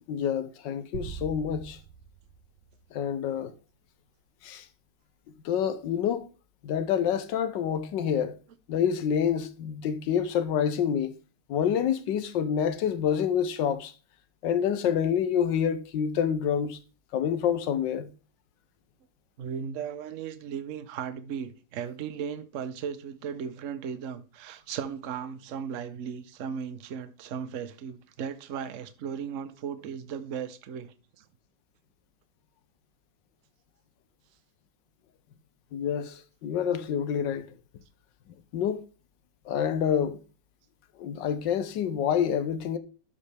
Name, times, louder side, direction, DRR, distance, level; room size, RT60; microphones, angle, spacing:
voice 1, 0.1-1.8 2.9-3.5 4.4-4.7 5.4-6.3 6.6-8.3 8.7-11.2 11.5-13.9 14.4-16.8 17.1-18.1 35.7-37.5 38.5-38.8 39.4-40.2 41.0-42.8, left 8 dB, 80° left, 1.4 m, -27 dB
sound 1, 0.9-3.4, right 7 dB, 70° right, 1.3 m, -43 dB
voice 2, 19.4-31.2, right 7 dB, 55° right, 1.0 m, -36 dB
11.5 x 5.4 x 3.4 m
omnidirectional pair, 2.0 m